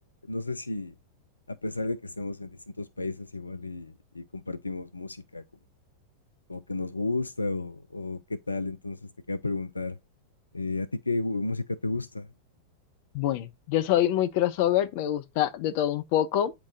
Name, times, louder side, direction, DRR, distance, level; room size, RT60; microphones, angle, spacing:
voice 1, 0.3-0.9 1.5-5.4 6.5-9.0 9.3-10.0 10.5-12.3, left 2 dB, 80° left, 0.4 m, -32 dB
voice 2, 13.1-16.5, left 12 dB, 50° left, 0.8 m, -25 dB
8.8 x 4.6 x 3.9 m
figure-of-eight pair, 90°, 0 cm